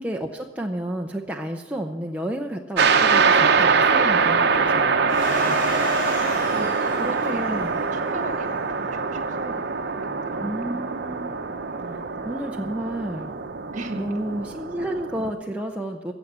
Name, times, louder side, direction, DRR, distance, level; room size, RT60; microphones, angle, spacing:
voice 1, 0.0-5.7 6.9-7.7 10.4-11.4 11.9-13.4 14.0-16.1, right 1 dB, 5° right, 1 dB, 0.6 m, -31 dB
sound 1, 2.8-15.3, right 5 dB, 55° right, 0.8 m, -23 dB
Domestic sounds home sounds, 5.1-9.5, left 3 dB, 45° left, 4.1 m, -35 dB
voice 2, 6.4-9.6 9.9-10.8 11.8-12.0 13.7-14.2, right 2 dB, 40° right, 5 dB, 1.5 m, -37 dB
15.5 x 8.0 x 7.2 m, 1.3 s
head